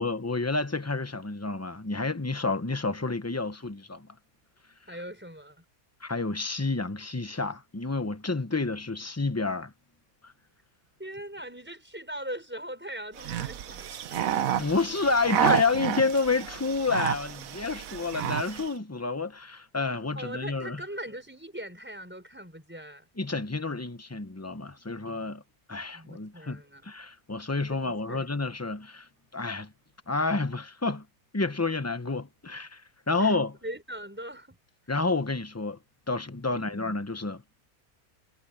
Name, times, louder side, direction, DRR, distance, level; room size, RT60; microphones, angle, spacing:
voice 1, 0.0-4.1 6.0-9.7 10.2-10.3 14.6-20.8 23.2-25.4 25.7-29.7 30.1-31.0 31.3-32.8 33.1-33.6 34.9-35.8 36.1-37.4, left 3 dB, 15° left, 0.8 m, -29 dB
voice 2, 4.9-5.6 8.5-8.6 11.0-14.3 20.1-23.1 25.9-26.9 27.7-28.3 33.2-33.4 33.6-34.6 36.5-36.8, right 1 dB, 5° right, 5.1 m, -40 dB
sound 1, 13.2-18.7, right 9 dB, 70° right, 1.3 m, -30 dB
omnidirectional pair, 1.5 m